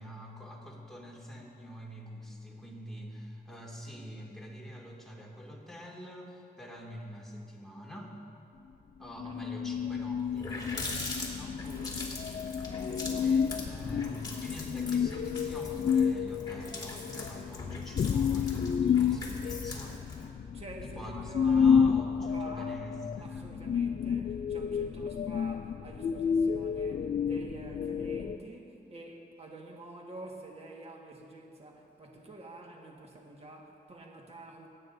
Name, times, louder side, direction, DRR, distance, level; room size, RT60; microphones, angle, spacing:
voice 1, 0.0-8.2 9.0-11.6 13.2-20.0 20.8-23.6, equal, ahead, -4 dB, 2.3 m, -46 dB
sound 1, 9.2-28.4, left 7 dB, 45° left, 0.4 m, -30 dB
voice 2, 9.2-9.6 9.8-10.0 11.6-12.1 12.8-14.2 20.5-21.9 22.3-22.7 23.2-34.7, right 2 dB, 35° right, -1 dB, 1.6 m, -48 dB
Water tap faucet, 9.8-9.9 10.2-20.3, left 2 dB, 25° left, 2.4 m, -42 dB
27.5 x 9.6 x 2.6 m, 2.7 s
cardioid pair, 100°, 18 cm